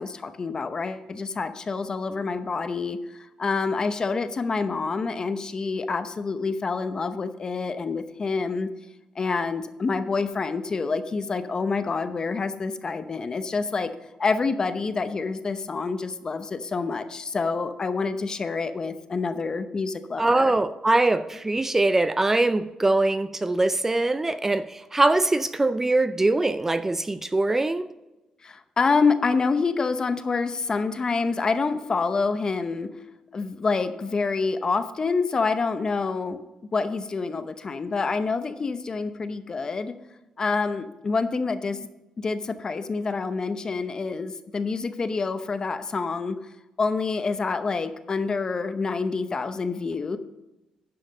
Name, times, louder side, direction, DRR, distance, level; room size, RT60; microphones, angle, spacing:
voice 1, 0.0-8.7 9.2-13.9 14.2-20.5 28.4-32.9 33.3-36.4 36.7-39.9 40.4-41.8 42.2-46.4 46.8-50.2, left 4 dB, 35° left, 0.8 m, -27 dB
voice 2, 20.2-27.9, right 2 dB, 20° right, 0.4 m, -22 dB
10.5 x 5.8 x 5.3 m
cardioid pair, 95°, 2 cm